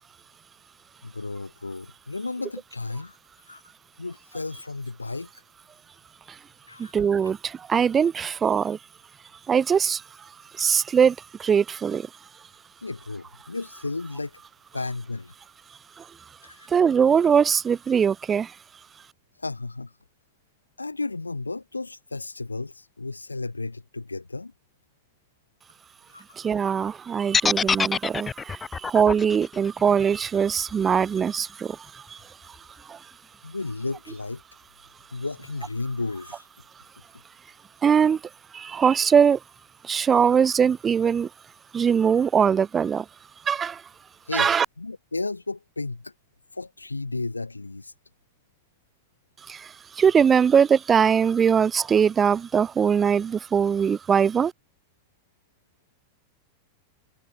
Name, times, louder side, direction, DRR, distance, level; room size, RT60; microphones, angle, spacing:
voice 1, 1.0-3.6 4.0-5.4 6.7-6.9 12.8-14.4 14.7-15.3 16.4-16.7 19.4-19.9 20.8-24.5 26.1-26.2 33.4-34.4 35.1-36.5 44.2-46.1 46.5-47.9, left 3 dB, 80° left, 1.5 m, -33 dB
voice 2, 6.8-8.8 9.5-10.0 10.5-12.1 16.0-16.1 16.7-18.5 26.4-32.2 32.9-33.0 37.8-38.2 38.5-39.4 39.8-41.3 41.7-43.1 43.5-43.8 44.3-44.7 49.5-54.5, right 7 dB, 20° right, 0.5 m, -21 dB
sound 1, 27.3-31.4, left 5 dB, 15° left, 0.7 m, -26 dB
figure-of-eight pair, 90°, 0 cm